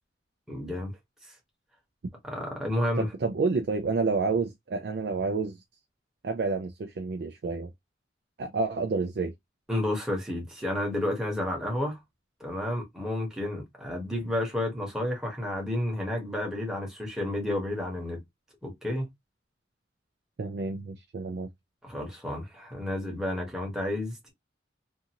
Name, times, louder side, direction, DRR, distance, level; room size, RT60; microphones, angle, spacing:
voice 1, 0.5-0.9 2.2-3.1 9.7-12.0 12.4-18.2 18.6-19.1 21.8-24.3, left 1 dB, 5° right, 1.0 m, -31 dB
voice 2, 3.0-5.6 6.2-7.7 8.4-9.3 20.4-21.5, right 4 dB, 60° right, 0.4 m, -29 dB
2.7 x 2.5 x 2.8 m
head